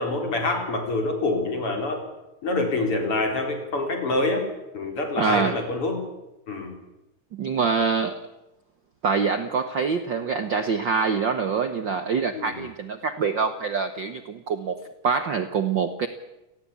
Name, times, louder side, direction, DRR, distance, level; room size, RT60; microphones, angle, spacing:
voice 1, 0.0-2.0 2.4-4.5 4.7-6.0 6.5-6.7 12.3-12.6, left 2 dB, 45° left, 4 dB, 4.9 m, -26 dB
voice 2, 5.2-5.6 7.3-8.3 9.0-14.8 15.0-16.1, right 5 dB, 55° right, 10 dB, 1.4 m, -25 dB
29.5 x 18.5 x 8.6 m, 0.95 s
omnidirectional pair, 3.4 m